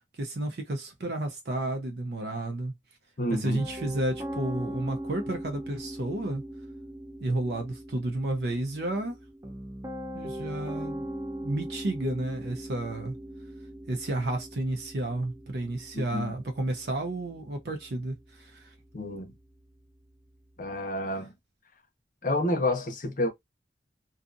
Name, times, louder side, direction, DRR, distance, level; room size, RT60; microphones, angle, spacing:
voice 1, 0.2-2.7 3.3-6.4 7.2-9.1 10.1-11.1 11.4-13.1 13.9-18.5, right 2 dB, 60° right, 0.6 m, -31 dB
voice 2, 3.2-3.6 15.9-16.3 18.9-19.3 20.6-21.3 22.2-23.3, left 1 dB, 50° left, 0.7 m, -29 dB
Piano, 3.6-20.7, right 1 dB, 15° right, 0.4 m, -41 dB
2.6 x 2.4 x 2.5 m
head